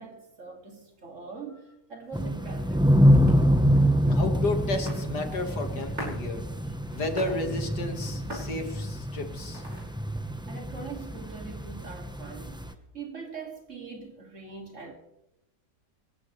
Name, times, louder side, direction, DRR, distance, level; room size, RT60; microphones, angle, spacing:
voice 1, 0.0-3.0 10.5-14.9, right 5 dB, 45° right, 2.9 m, -42 dB
sound 1, 2.0-10.1, equal, 30° right, 5.9 m, -44 dB
sound 2, 2.1-12.7, equal, 5° right, 0.7 m, -26 dB
voice 2, 4.0-6.5 6.9-9.6, left 2 dB, 65° left, 2.5 m, -32 dB
27.5 x 15.0 x 3.3 m
omnidirectional pair, 1.9 m